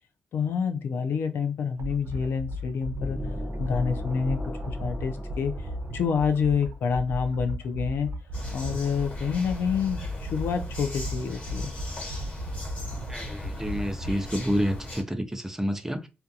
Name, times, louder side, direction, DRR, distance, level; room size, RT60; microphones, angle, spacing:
voice 1, 0.3-3.2 3.6-4.4 4.7-8.1 8.5-11.7, left 6 dB, 80° left, 0.4 m, -28 dB
sound 1, 1.8-14.1, equal, 85° right, 0.4 m, -36 dB
sound 2, 3.0-6.8, equal, 10° left, 0.9 m, -35 dB
sound 3, 8.3-15.0, left 1 dB, 35° left, 1.2 m, -38 dB
voice 2, 13.1-16.1, equal, 10° right, 0.5 m, -29 dB
2.5 x 2.2 x 2.6 m
cardioid pair, 65°, 4 cm